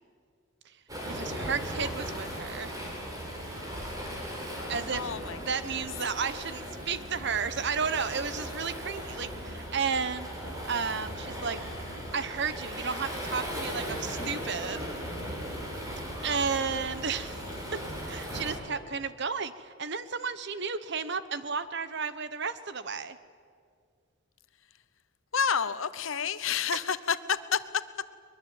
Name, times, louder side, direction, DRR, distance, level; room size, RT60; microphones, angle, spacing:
Waves surf, 0.9-18.6, equal, 15° right, 4.5 m, -37 dB
voice 1, 1.1-2.7 4.7-5.1 5.4-10.3 10.7-11.6 11.9-14.9 16.2-17.4 17.7-17.8 18.1-23.2, right 5 dB, 55° right, 13 dB, 1.1 m, -33 dB
voice 2, 4.9-5.8 25.3-27.6, left 7 dB, 70° left, 14 dB, 1.0 m, -30 dB
22.5 x 22.0 x 9.0 m, 2.1 s
head